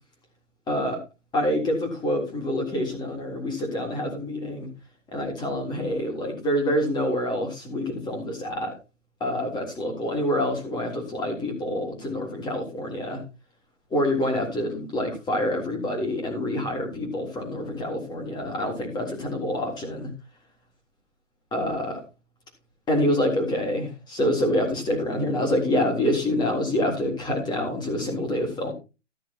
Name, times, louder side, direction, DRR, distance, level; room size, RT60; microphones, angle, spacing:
voice 1, 0.7-1.0 1.3-4.7 5.1-8.7 9.2-13.2 13.9-20.1 21.5-22.0 22.9-28.7, left 1 dB, 10° left, 1 dB, 3.6 m, -26 dB
14.0 x 7.0 x 4.4 m, 0.30 s
figure-of-eight pair, 135°, 37 cm